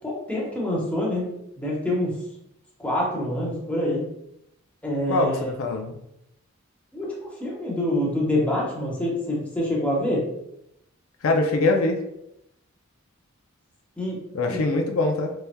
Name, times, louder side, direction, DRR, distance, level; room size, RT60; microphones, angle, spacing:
voice 1, 0.0-1.3 1.6-2.1 2.8-4.0 4.8-5.5 6.9-10.2 14.0-14.2 14.5-14.6, left 1 dB, 5° left, -4 dB, 1.0 m, -26 dB
voice 2, 5.1-6.0 11.2-12.0 14.3-15.3, left 2 dB, 80° left, 3 dB, 0.5 m, -23 dB
4.2 x 3.4 x 2.2 m, 0.81 s
head